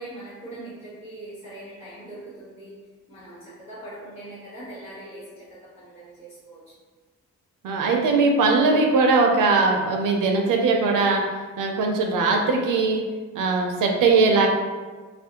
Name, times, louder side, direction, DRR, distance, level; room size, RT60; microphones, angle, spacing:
voice 1, 0.0-6.6, right 1 dB, 80° left, -14 dB, 1.1 m, -41 dB
voice 2, 7.6-11.2 11.6-13.0 13.3-14.5, right 3 dB, 75° right, 2 dB, 0.5 m, -20 dB
2.4 x 2.0 x 2.8 m, 1.4 s
cardioid pair, 55°, 32 cm